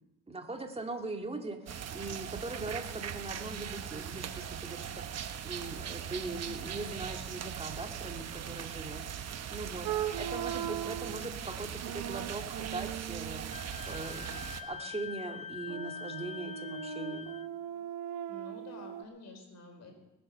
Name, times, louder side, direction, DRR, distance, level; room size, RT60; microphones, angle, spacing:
voice 1, 0.3-1.7 1.9-9.9 10.2-17.3, right 2 dB, 20° right, 4 dB, 2.1 m, -41 dB
sound 1, 1.7-14.6, right 8 dB, 55° right, 1.2 m, -40 dB
voice 2, 6.4-6.7 18.3-19.9, left 1 dB, 60° left, 4 dB, 4.6 m, -50 dB
sound 2, 9.8-11.2 11.8-13.6 15.7-19.0, right 10 dB, 85° right, 0.9 m, -39 dB
Wind instrument woodwind instrument, 13.5-17.5, left 7 dB, 20° left, 0.6 m, -44 dB
20.5 x 9.0 x 6.7 m, 0.94 s
cardioid pair, 90°, 30 cm